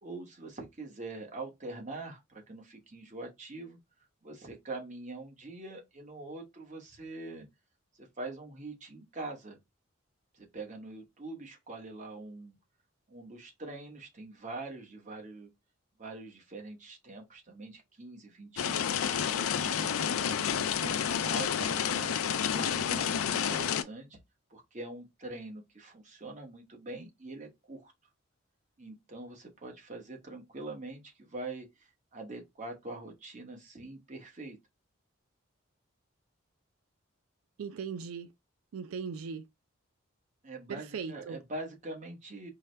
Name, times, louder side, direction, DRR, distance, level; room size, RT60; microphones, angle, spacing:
voice 1, 0.0-3.8 4.2-7.5 8.0-9.6 10.3-12.5 13.1-15.5 16.0-20.1 20.4-22.2 22.5-24.2 24.5-27.9 28.8-34.6 40.4-42.5, right 2 dB, 35° right, 1.1 m, -44 dB
sound 1, 18.6-23.8, left 8 dB, 90° left, 0.4 m, -30 dB
voice 2, 37.6-38.3 38.7-39.4 40.7-41.4, right 6 dB, 90° right, 0.4 m, -38 dB
4.6 x 2.2 x 3.3 m
head